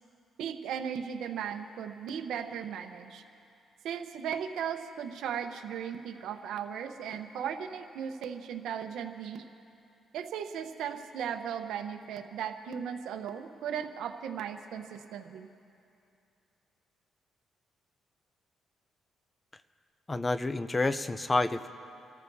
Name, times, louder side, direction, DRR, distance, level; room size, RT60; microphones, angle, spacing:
voice 1, 0.4-3.2 3.8-9.4 10.1-15.5, right 8 dB, 80° right, 7 dB, 0.9 m, -37 dB
voice 2, 20.1-21.7, left 2 dB, 20° left, 12 dB, 0.6 m, -29 dB
30.0 x 14.0 x 2.7 m, 2.6 s
cardioid pair, 90°, 0 cm